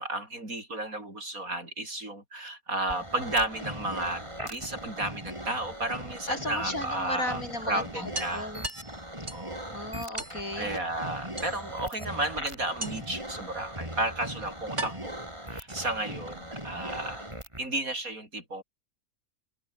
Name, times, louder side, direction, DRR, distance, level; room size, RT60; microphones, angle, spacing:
voice 1, 0.0-8.5 9.3-9.8 10.6-17.3 17.6-18.6, right 2 dB, 85° right, 8.0 m, -33 dB
sound 1, 2.9-17.7, right 1 dB, 20° right, 8.0 m, -40 dB
sound 2, 4.1-5.2 6.7-6.8 7.1-7.2 7.5-7.6 8.1-9.5 10.2-10.4 11.4-11.9 12.8-13.2 14.1-14.2 14.8-16.1, right 1 dB, 60° right, 8.4 m, -39 dB
voice 2, 6.3-8.7 9.7-10.7, left 1 dB, 80° left, 8.4 m, -35 dB
omnidirectional pair, 1.4 m